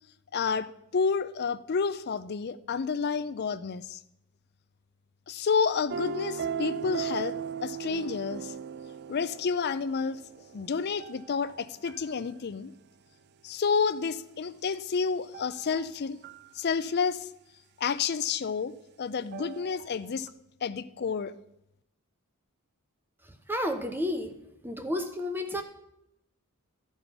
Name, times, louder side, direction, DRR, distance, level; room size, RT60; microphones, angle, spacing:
voice 1, 0.3-0.7 0.9-4.0 5.3-7.3 7.6-8.5 9.1-10.2 10.5-12.7 13.4-16.2 16.6-17.3 17.8-18.7 19.0-20.3 20.6-21.3, left 5 dB, 45° left, 14 dB, 0.5 m, -30 dB
sound 1, 5.9-12.1 15.3-15.9 16.2-16.5 19.3-19.9 20.3-20.4, right 7 dB, 50° right, 0.3 m, -38 dB
voice 2, 23.5-24.3 24.6-25.6, left 1 dB, 10° right, 6 dB, 0.8 m, -31 dB
12.5 x 5.5 x 5.9 m, 0.82 s
head